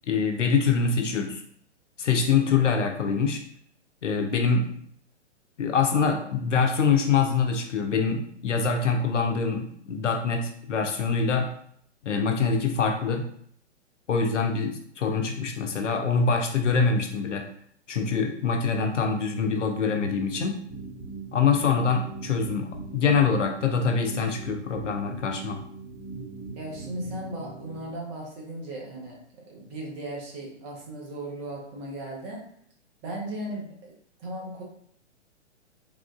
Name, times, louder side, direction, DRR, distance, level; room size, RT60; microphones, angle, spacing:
voice 1, 0.1-1.4 2.0-3.4 4.0-4.7 5.6-11.5 12.0-13.3 14.1-17.5 17.9-20.6 21.3-25.6, left 5 dB, 80° left, 4 dB, 0.7 m, -24 dB
sound 1, 20.0-27.9, right 4 dB, 10° right, 0.4 m, -41 dB
voice 2, 21.5-21.9 26.5-32.5 33.0-33.9 34.2-34.6, right 1 dB, 25° right, -2 dB, 0.8 m, -37 dB
3.4 x 2.4 x 2.3 m, 0.63 s
figure-of-eight pair, 120°, 36 cm